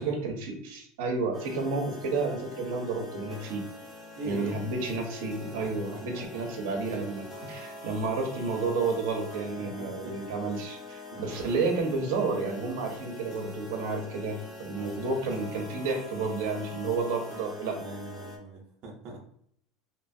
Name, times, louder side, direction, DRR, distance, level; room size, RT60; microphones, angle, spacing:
voice 1, 0.0-3.6 4.2-17.8, right 3 dB, 75° right, 1 dB, 0.7 m, -31 dB
sound 1, 1.3-18.4, left 2 dB, 10° left, 0.6 m, -44 dB
voice 2, 4.2-4.6 5.6-5.7 6.1-6.2 6.7-7.0 8.6-8.7 9.5-10.1 11.1-11.6 14.7-15.2 17.8-19.3, right 2 dB, 35° right, -2 dB, 0.7 m, -42 dB
2.9 x 2.3 x 2.6 m, 0.65 s
cardioid pair, 180°, 0 cm